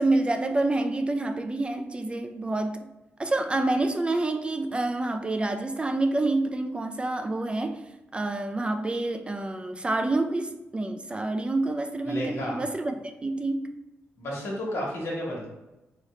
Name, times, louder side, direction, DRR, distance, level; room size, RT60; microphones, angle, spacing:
voice 1, 0.0-2.9 3.2-13.7, right 2 dB, 20° right, 7 dB, 0.3 m, -28 dB
voice 2, 12.0-12.6 14.2-15.5, left 1 dB, 75° left, -3 dB, 1.4 m, -32 dB
3.6 x 3.0 x 3.1 m, 0.99 s
cardioid pair, 80°, 5 cm